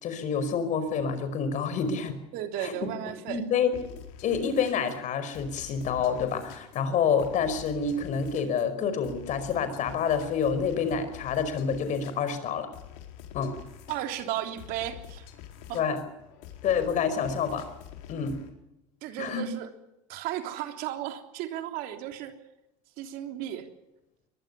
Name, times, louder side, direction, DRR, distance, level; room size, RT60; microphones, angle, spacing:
voice 1, 0.0-2.2 2.6-2.8 3.3-12.7 13.3-13.5 15.7-16.0 16.6-17.7 18.1-18.4 19.2-19.5, left 6 dB, 50° left, 11 dB, 5.1 m, -28 dB
voice 2, 2.3-3.5 13.9-15.3 15.7-15.8 19.0-19.7 20.1-22.4 23.0-23.7, right 12 dB, 65° right, 6 dB, 3.3 m, -34 dB
sound 1, 3.7-18.5, left 10 dB, 75° left, 4.3 m, -47 dB
23.0 x 20.0 x 6.9 m, 0.92 s
supercardioid pair, 95°, 16 cm